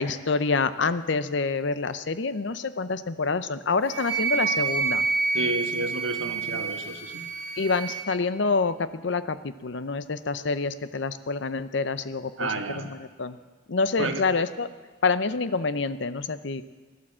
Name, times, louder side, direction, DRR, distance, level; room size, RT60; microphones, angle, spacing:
voice 1, 0.0-5.1 7.6-13.4 13.7-14.7 15.0-16.6, left 4 dB, 60° left, 13 dB, 0.6 m, -27 dB
Wind instrument woodwind instrument, 3.9-8.0, right 4 dB, 30° right, 5.1 m, -28 dB
voice 2, 5.3-7.2 12.4-12.9 14.0-14.2, right 2 dB, 70° right, 6 dB, 1.4 m, -30 dB
16.5 x 11.5 x 7.4 m, 1.4 s
head